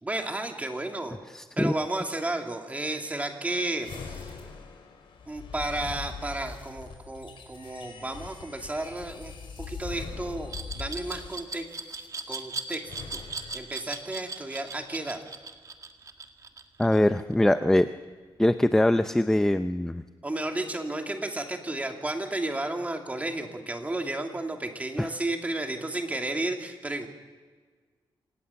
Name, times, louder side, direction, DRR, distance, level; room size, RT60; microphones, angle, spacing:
voice 1, 0.0-1.2 1.6-4.4 5.3-11.7 12.3-12.8 13.1-13.3 13.5-15.2 20.2-27.1, right 2 dB, 15° right, 3 dB, 2.6 m, -32 dB
voice 2, 1.3-1.7 16.8-17.9 18.4-20.0 25.0-25.1, left 1 dB, 5° left, 10 dB, 0.6 m, -22 dB
sound 1, 3.8-12.1 12.8-13.5, left 5 dB, 80° left, 5.0 m, -42 dB
Glass, 10.5-17.3, right 3 dB, 40° right, 1.9 m, -38 dB
26.5 x 18.5 x 7.1 m, 1.5 s
wide cardioid pair, 125°, 9 cm